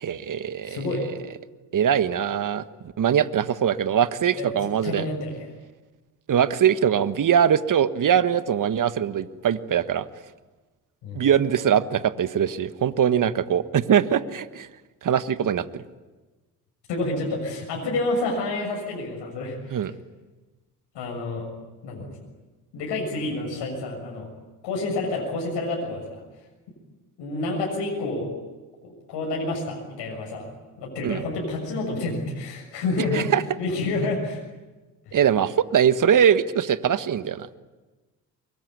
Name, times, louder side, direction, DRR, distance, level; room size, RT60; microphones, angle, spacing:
voice 1, 0.0-0.8 1.7-2.6 3.0-5.1 6.3-10.0 11.1-14.7 15.0-15.8 19.7-19.9 31.0-31.2 33.1-33.4 35.1-37.5, right 8 dB, 45° right, 13 dB, 1.5 m, -22 dB
voice 2, 0.6-1.0 4.4-5.5 11.0-11.2 16.9-19.9 20.9-21.5 21.8-22.2 22.7-24.3 24.6-26.2 27.2-28.4 28.8-30.5 30.8-33.3 33.6-34.4 35.1-35.2, left 2 dB, 65° left, 0 dB, 6.9 m, -29 dB
24.0 x 22.5 x 9.6 m, 1.2 s
hypercardioid pair, 50°, 45 cm